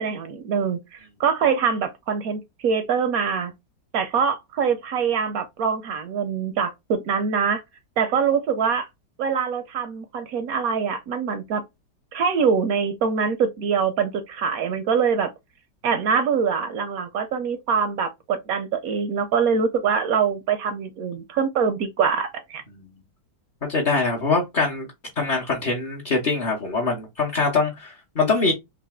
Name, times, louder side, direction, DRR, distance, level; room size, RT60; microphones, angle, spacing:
voice 1, 0.0-3.5 3.9-7.6 8.0-8.9 9.2-11.6 12.1-15.3 15.8-22.6, right 6 dB, 70° right, 0.9 m, -24 dB
voice 2, 23.7-24.9 25.2-28.5, left 3 dB, 40° left, 0.7 m, -23 dB
3.9 x 2.6 x 3.5 m
omnidirectional pair, 1.9 m